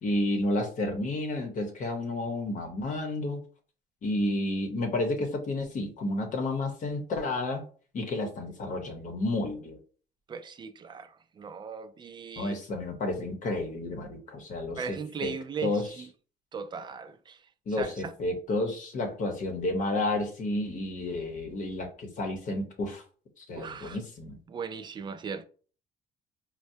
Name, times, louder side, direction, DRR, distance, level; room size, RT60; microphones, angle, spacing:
voice 1, 0.0-3.4 4.0-7.6 7.9-9.8 12.4-15.3 15.6-16.0 17.7-23.0 23.4-24.4, left 2 dB, 50° left, 0.9 m, -31 dB
voice 2, 10.3-12.6 14.8-16.1 16.5-17.4 17.8-18.1 23.5-24.0 24.5-25.4, right 6 dB, 25° right, 0.4 m, -38 dB
4.4 x 2.1 x 2.6 m
cardioid pair, 110°, 17 cm